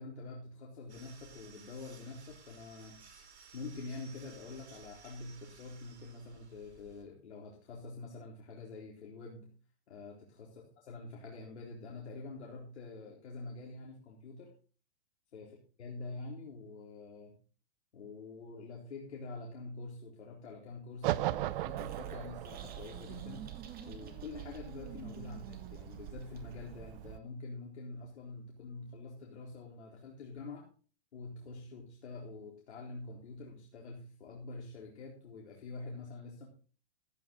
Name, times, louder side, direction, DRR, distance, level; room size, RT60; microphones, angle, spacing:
voice 1, 0.0-3.0 3.5-9.5 9.9-10.5 10.9-14.5 15.3-15.5 15.8-17.4 17.9-23.5 23.9-30.6 31.1-36.5, left 3 dB, 80° left, -2 dB, 4.0 m, -46 dB
sound 1, 0.9-7.0, right 6 dB, 85° right, 3.4 m, -57 dB
sound 2, 21.0-27.2, right 16 dB, 55° right, 0.7 m, -39 dB
sound 3, 21.8-26.8, right 7 dB, 25° right, 2.3 m, -51 dB
14.5 x 9.1 x 3.9 m, 0.38 s
hypercardioid pair, 125°, 33 cm